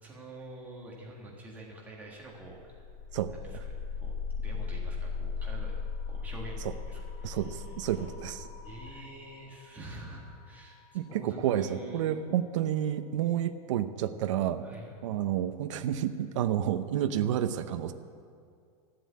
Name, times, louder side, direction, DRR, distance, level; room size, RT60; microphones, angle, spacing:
voice 1, 0.0-2.9 3.3-5.7 6.1-8.0 8.6-10.8 11.1-12.1 13.2-13.4 14.6-15.0, right 1 dB, 10° right, -3 dB, 1.6 m, -47 dB
sound 1, 2.6-12.3, left 5 dB, 25° left, 1.6 m, -39 dB
voice 2, 7.2-8.5 10.9-14.6 15.0-17.9, right 10 dB, 50° right, 9 dB, 0.7 m, -30 dB
14.0 x 7.8 x 9.5 m, 2.3 s
supercardioid pair, 180°, 20 cm